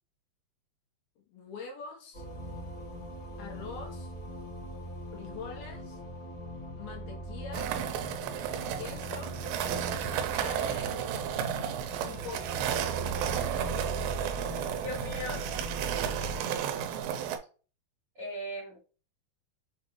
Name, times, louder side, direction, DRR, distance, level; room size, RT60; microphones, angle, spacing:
voice 1, 1.2-2.2 3.4-4.1 5.1-6.0 6.8-7.7 8.8-9.3 10.3-11.0 12.1-12.5, left 5 dB, 75° left, 0 dB, 2.8 m, -44 dB
sound 1, 2.1-16.4, right 1 dB, 50° left, 1.4 m, -40 dB
sound 2, 7.5-17.4, right 9 dB, 85° right, 2.4 m, -33 dB
voice 2, 14.5-15.5 16.0-16.4 18.1-18.8, left 1 dB, 45° right, -7 dB, 1.1 m, -40 dB
6.5 x 2.3 x 3.0 m, 0.36 s
omnidirectional pair, 4.4 m